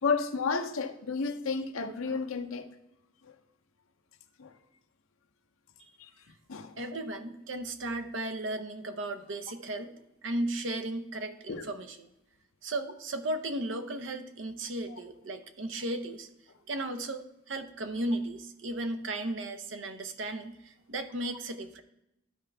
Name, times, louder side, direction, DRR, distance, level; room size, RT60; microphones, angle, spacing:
voice 1, 0.0-2.7 3.2-3.3 4.4-4.5 6.0-6.1 6.5-6.7 11.5-11.7 14.9-15.0, left 4 dB, 85° left, 0.7 m, -32 dB
voice 2, 6.8-12.1 12.6-16.3 16.7-21.8, right 1 dB, 65° right, 0.8 m, -35 dB
12.5 x 4.6 x 3.4 m
head